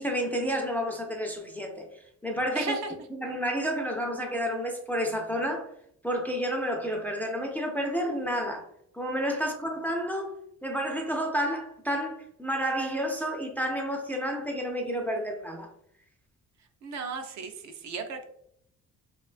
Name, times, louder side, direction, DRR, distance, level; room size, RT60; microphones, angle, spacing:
voice 1, 0.0-1.9 2.2-2.7 3.1-5.7 6.0-8.7 8.9-10.3 10.6-15.7, equal, 5° left, 2 dB, 0.3 m, -30 dB
voice 2, 2.5-2.9 16.8-18.2, right 4 dB, 70° right, 5 dB, 0.5 m, -35 dB
2.4 x 2.2 x 2.3 m, 0.71 s
cardioid pair, 90°, 30 cm